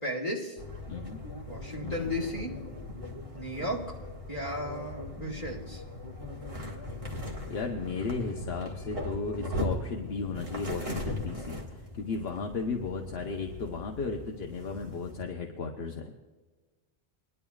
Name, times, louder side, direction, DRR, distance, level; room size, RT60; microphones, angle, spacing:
voice 1, 0.0-0.6 1.5-2.5 3.3-3.9 4.3-5.8, left 1 dB, 40° left, -3 dB, 2.9 m, -34 dB
sound 1, 0.6-15.2, left 1 dB, 30° right, 1.9 m, -39 dB
voice 2, 0.9-1.2 1.8-2.1 5.1-5.5 7.1-7.2 7.5-11.6 11.9-16.2, left 4 dB, 70° left, 2 dB, 1.1 m, -35 dB
21.5 x 11.0 x 2.3 m, 1.3 s
omnidirectional pair, 1.1 m